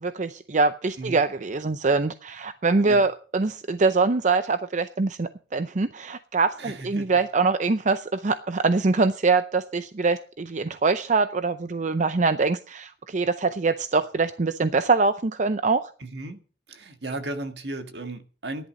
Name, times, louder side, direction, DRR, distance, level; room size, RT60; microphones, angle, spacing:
voice 1, 0.0-15.9, right 3 dB, 45° right, 0.6 m, -24 dB
voice 2, 6.6-7.1 16.0-16.4 16.7-18.7, right 2 dB, 70° right, 1.7 m, -35 dB
13.5 x 11.0 x 5.2 m
head